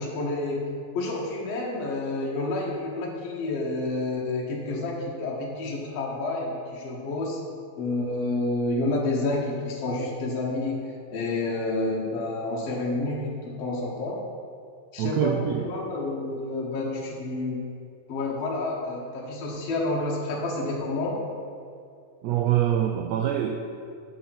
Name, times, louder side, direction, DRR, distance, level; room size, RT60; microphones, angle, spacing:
voice 1, 0.0-7.4 7.8-14.2 14.9-17.6 18.1-21.2, left 2 dB, 60° left, -3 dB, 2.0 m, -29 dB
voice 2, 15.0-15.8 22.2-23.6, right 10 dB, 85° right, 3 dB, 1.5 m, -25 dB
8.4 x 5.6 x 5.9 m, 2.4 s
omnidirectional pair, 3.6 m